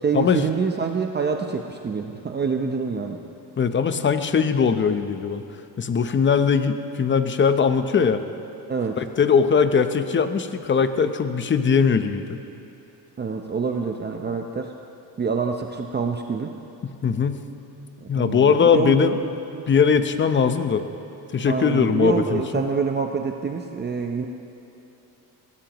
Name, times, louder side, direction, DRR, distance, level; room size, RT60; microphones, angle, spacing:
voice 1, 0.0-3.2 8.7-9.0 13.2-14.7 15.2-16.5 18.0-19.2 19.5-19.6 21.5-24.3, right 5 dB, 25° right, 3 dB, 0.7 m, -26 dB
voice 2, 3.6-5.4 5.8-8.2 9.0-12.4 16.8-17.5 18.1-19.1 19.7-20.8 21.3-22.4, left 6 dB, 30° left, 9 dB, 0.8 m, -20 dB
22.0 x 17.5 x 3.1 m, 2.9 s
cardioid pair, 120°, 41 cm